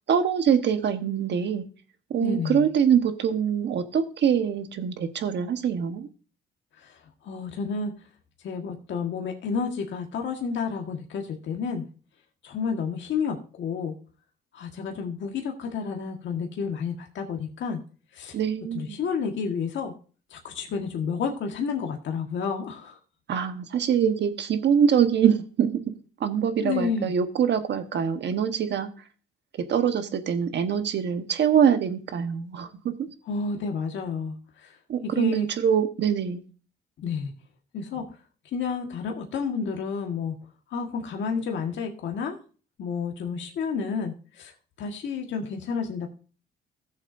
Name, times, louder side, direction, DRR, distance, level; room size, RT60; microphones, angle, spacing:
voice 1, 0.1-1.6 2.1-6.1 18.3-19.0 23.3-25.8 26.2-28.9 29.6-33.1 34.9-36.4, right 8 dB, 65° right, 8 dB, 1.2 m, -24 dB
voice 2, 2.2-2.7 7.2-7.9 8.4-11.8 12.4-13.9 14.5-17.8 18.1-18.4 18.7-19.9 20.3-23.0 26.6-27.1 33.3-34.3 34.6-34.7 35.2-35.5 37.0-37.3 37.7-38.0 38.5-40.3 40.7-42.3 42.8-44.5 44.8-46.1, left 5 dB, 70° left, 2 dB, 1.6 m, -30 dB
16.0 x 7.2 x 2.6 m, 0.38 s
cardioid pair, 90°, 20 cm